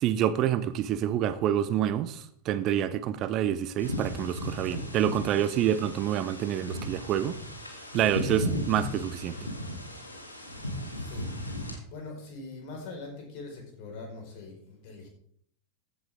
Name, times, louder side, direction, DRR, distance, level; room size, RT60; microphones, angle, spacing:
voice 1, 0.0-7.4 7.9-9.4, right 10 dB, 35° right, 14 dB, 0.7 m, -27 dB
sound 1, 3.8-11.8, equal, 85° left, 2.7 m, -35 dB
voice 2, 10.4-11.3 11.6-15.1, left 3 dB, 45° left, 1 dB, 5.0 m, -43 dB
15.0 x 10.5 x 3.7 m, 0.64 s
figure-of-eight pair, 90°, 0 cm